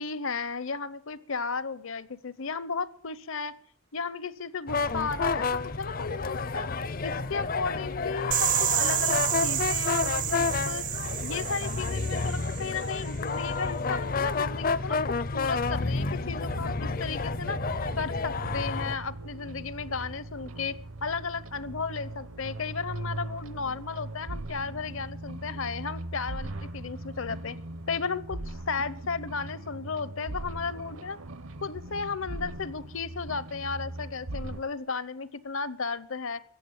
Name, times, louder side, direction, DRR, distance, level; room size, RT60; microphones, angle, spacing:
voice 1, 0.0-3.5 3.9-6.7 7.0-10.8 11.2-17.6 18.0-20.7 21.0-27.6 27.9-31.2 31.6-36.4, left 5 dB, 65° left, 18 dB, 0.8 m, -34 dB
sound 1, 4.7-19.0, left 4 dB, 40° left, 0.5 m, -30 dB
sound 2, 8.3-13.1, right 13 dB, 35° right, 0.5 m, -30 dB
sound 3, 15.7-34.6, right 1 dB, 70° right, 0.9 m, -40 dB
15.0 x 9.0 x 9.2 m, 0.68 s
head